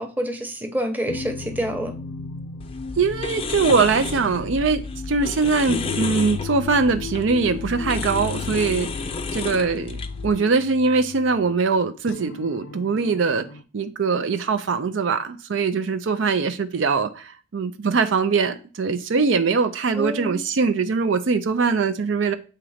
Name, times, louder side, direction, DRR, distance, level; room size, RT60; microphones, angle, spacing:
voice 1, 0.0-1.9 19.9-20.4, equal, 10° right, 0.9 m, -27 dB
sound 1, 1.1-13.6, left 5 dB, 80° left, 0.5 m, -36 dB
sound 2, 2.6-10.3, left 4 dB, 30° left, 0.4 m, -32 dB
voice 2, 3.0-8.9 9.3-13.4 13.7-22.4, right 4 dB, 80° right, 0.5 m, -22 dB
7.5 x 2.9 x 4.9 m
head